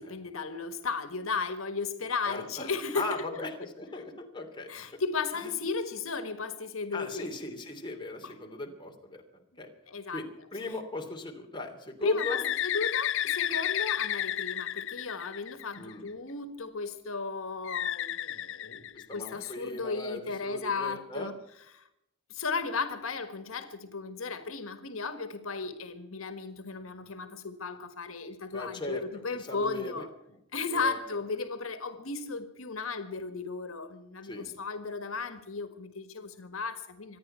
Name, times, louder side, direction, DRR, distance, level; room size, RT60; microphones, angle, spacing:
voice 1, 0.0-3.4 4.7-7.3 8.2-8.3 9.9-10.2 12.0-21.4 21.7-21.8 22.3-30.1 30.5-37.2, left 4 dB, 85° left, 9 dB, 1.6 m, -35 dB
voice 2, 2.2-2.7 2.9-4.7 5.4-5.5 6.9-9.2 9.6-9.7 10.1-12.5 15.7-16.0 18.9-21.3 28.5-29.0 29.3-30.1 30.7-31.0 34.2-34.5, left 2 dB, 25° left, 2 dB, 2.9 m, -38 dB
Bird, 12.2-15.9 17.7-19.5, left 11 dB, 65° left, 0.5 m, -32 dB
25.5 x 9.9 x 5.7 m, 0.81 s
head